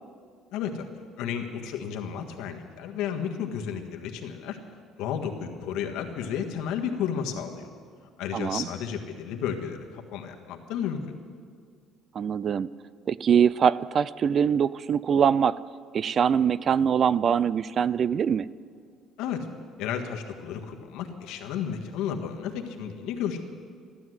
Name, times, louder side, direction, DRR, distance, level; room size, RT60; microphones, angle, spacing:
voice 1, 0.5-0.9 1.2-4.6 5.0-7.7 8.2-11.0 19.2-19.4 19.8-23.4, left 8 dB, 85° left, 3 dB, 1.6 m, -32 dB
voice 2, 8.3-8.7 12.2-12.7 13.1-15.6 15.9-18.5, right 7 dB, 40° right, 19 dB, 0.3 m, -23 dB
14.5 x 12.0 x 7.9 m, 2.1 s
cardioid pair, 145°, 0 cm